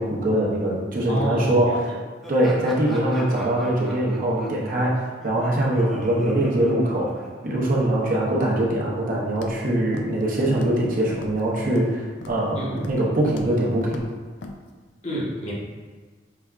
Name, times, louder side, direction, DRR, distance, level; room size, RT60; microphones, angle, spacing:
voice 1, 0.0-1.9 2.3-12.6 12.8-14.0, right 1 dB, 50° right, -4 dB, 0.8 m, -22 dB
voice 2, 1.1-1.8 12.5-12.8 15.0-15.5, equal, 35° left, -5 dB, 1.0 m, -28 dB
Laughter, 2.2-7.7, equal, ahead, 0.8 m, -41 dB
Walk footsteps, 9.4-9.7 9.9-10.2 10.5-10.8 11.1-11.9 12.2-12.5 12.8-13.1 13.3-13.5 13.8-14.1 14.4-14.5, left 2 dB, 75° left, 0.4 m, -40 dB
5.7 x 3.4 x 2.4 m, 1.5 s
head